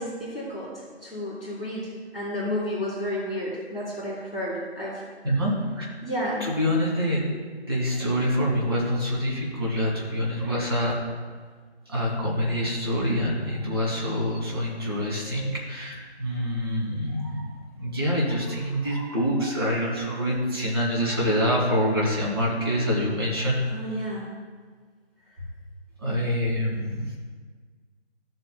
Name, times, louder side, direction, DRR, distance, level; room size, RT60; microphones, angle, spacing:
voice 1, 0.0-5.0 6.0-6.5 23.7-24.3, equal, ahead, -18 dB, 2.5 m, -31 dB
voice 2, 5.2-5.8 6.4-7.2 7.7-10.9 11.8-23.6 26.0-27.2, equal, 20° right, -4 dB, 1.6 m, -26 dB
13.5 x 7.7 x 2.2 m, 1.5 s
figure-of-eight pair, 165°, 33 cm